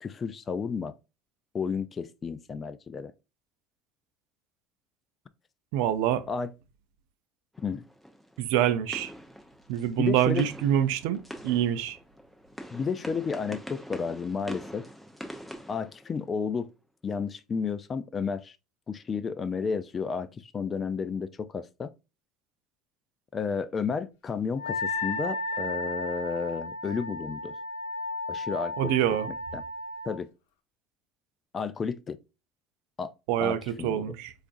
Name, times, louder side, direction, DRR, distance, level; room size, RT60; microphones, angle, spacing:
voice 1, 0.0-0.9 1.5-3.1 6.3-6.5 7.6-7.9 10.0-10.5 12.7-14.9 15.7-16.7 17.0-18.6 18.9-21.9 23.3-27.6 28.3-28.9 29.3-29.6 30.1-30.3 31.5-32.2 33.0-33.1 33.4-34.1, left 5 dB, 25° left, 0.3 m, -32 dB
voice 2, 5.7-6.2 8.4-9.1 9.7-11.2 11.4-12.0 28.8-29.3 33.3-34.3, right 11 dB, 75° right, 0.4 m, -25 dB
sound 1, 7.5-16.6, equal, ahead, 0.7 m, -44 dB
Wind instrument woodwind instrument, 24.6-30.1, left 2 dB, 85° left, 0.7 m, -34 dB
4.6 x 2.4 x 2.5 m
supercardioid pair, 130°, 0 cm